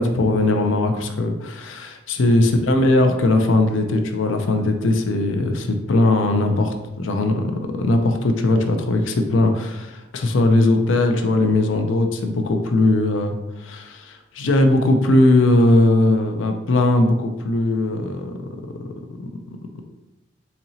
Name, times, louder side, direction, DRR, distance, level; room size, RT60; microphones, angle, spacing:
voice 1, 0.0-18.3 19.2-19.3, left 2 dB, 90° left, 5 dB, 0.5 m, -19 dB
4.2 x 2.8 x 2.7 m, 1.0 s
head